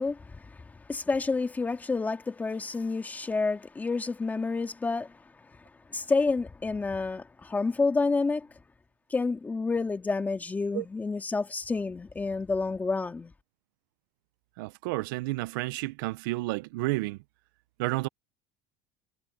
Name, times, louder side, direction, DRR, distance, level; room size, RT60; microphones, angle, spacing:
voice 1, 0.0-8.5 9.1-13.3, left 4 dB, 15° left, 2.1 m, -29 dB
voice 2, 14.6-17.2 17.8-18.1, right 21 dB, 90° right, 0.5 m, -31 dB
supercardioid pair, 130°, 11 cm